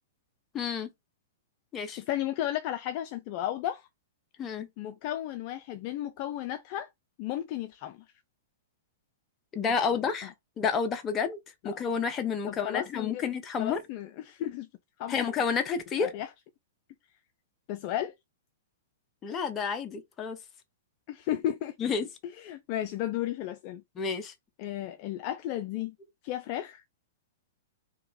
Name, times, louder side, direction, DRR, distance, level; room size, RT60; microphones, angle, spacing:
voice 1, 0.5-0.9 1.7-2.0 4.4-4.7 9.5-11.4 11.6-13.8 15.1-16.1 19.2-20.4 21.8-22.1 24.0-24.3, left 6 dB, 20° left, 0.7 m, -30 dB
voice 2, 2.0-3.9 4.8-6.9 7.2-8.0 9.6-10.0 11.6-11.8 12.5-13.2 13.6-14.7 15.0-15.2 16.0-16.3 17.7-18.1 21.1-21.9 22.4-23.8 24.6-26.0 26.2-26.8, left 12 dB, 40° left, 0.4 m, -34 dB
2.9 x 2.8 x 3.9 m
hypercardioid pair, 140°, 0 cm